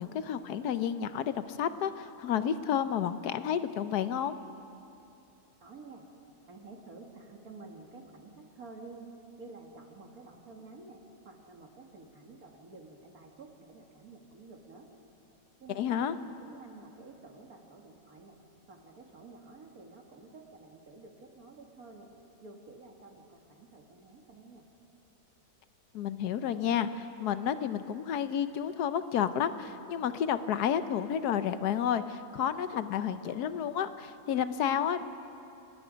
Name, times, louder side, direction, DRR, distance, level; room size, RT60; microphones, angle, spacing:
voice 1, 0.0-4.4 15.7-16.2 25.9-35.0, left 9 dB, 75° left, 11 dB, 1.3 m, -31 dB
voice 2, 5.6-6.1 6.5-14.9 15.6-18.4 18.7-22.1 22.4-24.6, right 3 dB, 60° right, 2 dB, 2.3 m, -51 dB
29.0 x 19.0 x 5.2 m, 2.8 s
omnidirectional pair, 1.8 m